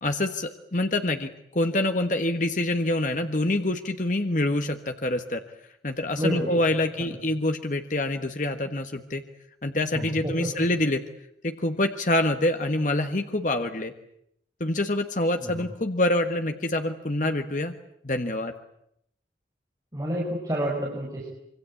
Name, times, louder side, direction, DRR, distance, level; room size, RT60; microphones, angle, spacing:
voice 1, 0.0-5.4 5.8-9.2 9.6-11.0 11.4-13.9 14.6-17.8 18.0-18.5, left 1 dB, 45° left, 6 dB, 1.4 m, -26 dB
voice 2, 6.2-6.5 7.0-7.2 9.9-10.7 15.4-15.6 19.9-21.3, equal, 20° right, -4 dB, 5.5 m, -29 dB
26.0 x 24.5 x 8.5 m, 0.74 s
head